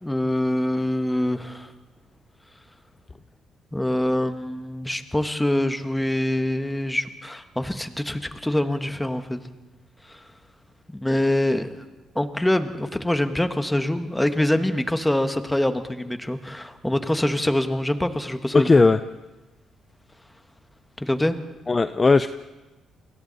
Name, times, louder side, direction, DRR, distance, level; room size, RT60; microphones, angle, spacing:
voice 1, 0.0-1.7 3.7-9.4 10.1-10.2 10.9-11.7 12.1-18.8 21.0-21.4, left 1 dB, 10° left, 8 dB, 1.5 m, -24 dB
voice 2, 18.5-19.0 21.7-22.3, left 3 dB, 25° left, 11 dB, 0.6 m, -17 dB
29.5 x 21.5 x 4.2 m, 1.1 s
cardioid pair, 90°, 0 cm